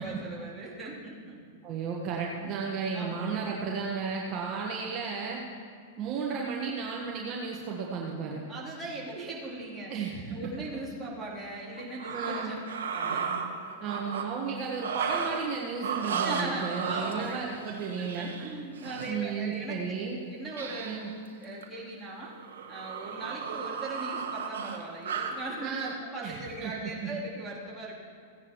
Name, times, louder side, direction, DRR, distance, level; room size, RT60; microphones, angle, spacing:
voice 1, 0.0-1.4 2.2-2.5 2.9-3.5 8.5-12.5 12.9-13.3 13.8-14.4 16.2-17.5 18.0-19.8 20.3-20.9 21.4-22.3 22.7-28.0, right 2 dB, 5° right, -8 dB, 3.3 m, -39 dB
voice 2, 1.6-5.4 6.0-8.4 9.9-10.4 12.1-12.6 13.8-18.3 19.1-20.2 20.8-21.1 25.6-25.9 26.2-27.1, right 5 dB, 40° right, -2 dB, 1.4 m, -34 dB
sound 1, 11.8-14.3 14.7-15.5 15.8-19.1 20.5-21.1 21.4-21.7 22.2-25.4, right 6 dB, 85° right, 1.3 m, -34 dB
16.5 x 9.7 x 3.1 m, 2.3 s
hypercardioid pair, 130°, 0 cm